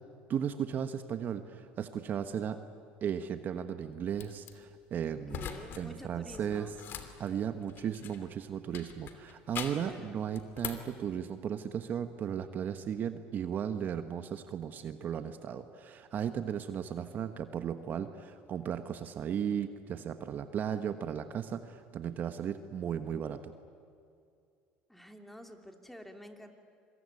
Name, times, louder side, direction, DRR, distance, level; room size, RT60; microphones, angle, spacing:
voice 1, 0.3-2.6 3.0-5.5 5.8-6.7 7.2-23.5, right 8 dB, 45° right, 9 dB, 1.2 m, -36 dB
sound 1, 4.2-4.5 5.3-5.8 6.1-8.3 8.7-9.9 10.3-10.9, left 8 dB, 55° left, 2.9 m, -42 dB
voice 2, 5.1-6.8 9.7-10.3 24.9-26.5, equal, 5° left, 5 dB, 2.8 m, -49 dB
26.5 x 23.0 x 9.7 m, 2.4 s
supercardioid pair, 100°, 4 cm